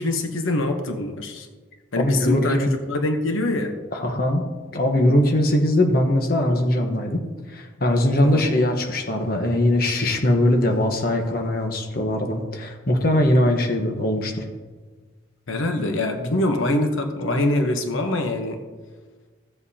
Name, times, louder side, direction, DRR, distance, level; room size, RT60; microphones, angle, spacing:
voice 1, 0.0-1.5 1.9-2.6 2.9-3.8 8.2-8.4 15.5-18.6, left 2 dB, 85° left, 5 dB, 1.0 m, -24 dB
voice 2, 2.0-2.7 3.9-4.4 4.7-7.2 7.5-14.5, left 1 dB, 50° left, 3 dB, 1.1 m, -21 dB
15.5 x 7.5 x 2.8 m, 1.4 s
head